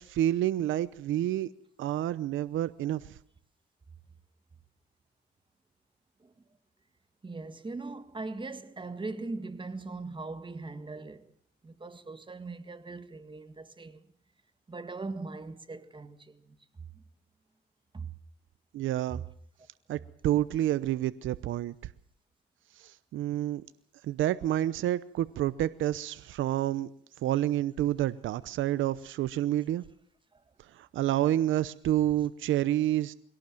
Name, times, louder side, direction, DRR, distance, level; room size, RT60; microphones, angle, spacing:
voice 1, 0.0-1.5 1.8-3.2 18.7-19.2 19.9-21.7 22.8-23.6 24.0-26.9 27.2-29.8 30.7-33.1, right 13 dB, 80° right, 0.8 m, -29 dB
voice 2, 7.2-11.3 11.6-14.0 14.7-16.6 17.9-18.1, right 3 dB, 25° right, 1.8 m, -40 dB
23.0 x 18.0 x 7.7 m
cardioid pair, 90°, 20 cm